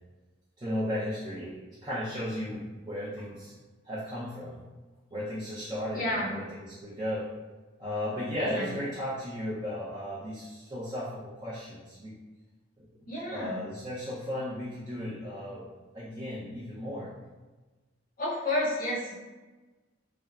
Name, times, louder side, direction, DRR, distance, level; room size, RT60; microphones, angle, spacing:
voice 1, 0.6-3.5 3.8-4.6 5.1-7.3 7.8-12.1 12.8-15.7 15.9-17.1, left 1 dB, 20° right, -10 dB, 0.5 m, -35 dB
voice 2, 5.9-6.3 8.5-8.8 13.1-13.6 18.2-19.1, left 1 dB, 45° left, -6 dB, 0.8 m, -30 dB
3.4 x 2.0 x 2.3 m, 1.2 s
head